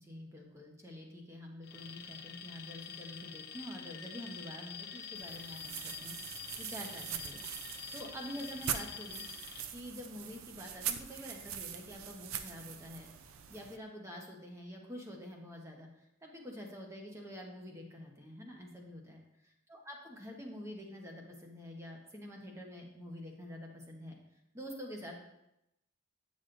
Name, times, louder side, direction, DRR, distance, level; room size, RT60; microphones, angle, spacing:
voice 1, 0.0-6.1 6.6-9.2 9.7-15.9 16.2-24.2 24.5-25.2, equal, 15° right, 0 dB, 0.9 m, -47 dB
Alarm, 1.6-9.6, left 7 dB, 50° left, 0.6 m, -47 dB
sound 1, 5.1-13.8, right 8 dB, 80° right, 0.5 m, -42 dB
8.9 x 6.2 x 2.6 m, 0.86 s
head